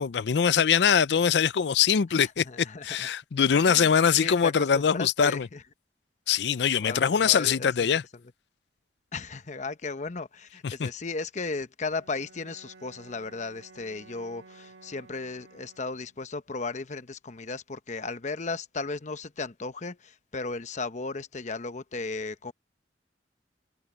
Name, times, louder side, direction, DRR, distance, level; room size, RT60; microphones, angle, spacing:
voice 1, 0.0-2.4 2.8-5.5 6.3-8.0 10.6-10.9, left 7 dB, 75° left, 0.5 m, -23 dB
voice 2, 2.2-3.1 3.5-5.6 6.8-7.9 9.1-22.5, left 3 dB, 45° left, 0.9 m, -35 dB
Bowed string instrument, 11.9-16.3, right 3 dB, 70° right, 2.1 m, -53 dB
head